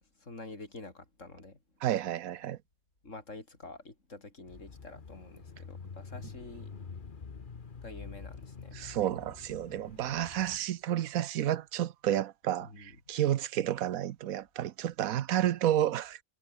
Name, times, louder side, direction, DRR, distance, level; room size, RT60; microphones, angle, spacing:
voice 1, 0.2-1.6 3.0-6.7 7.8-8.8 12.6-13.0, left 2 dB, 60° left, 5.2 m, -47 dB
voice 2, 1.8-2.6 8.7-16.2, right 12 dB, 85° right, 1.2 m, -31 dB
Bicycle / Mechanisms, 4.5-10.6, left 5 dB, 40° left, 1.3 m, -47 dB
omnidirectional pair, 1.5 m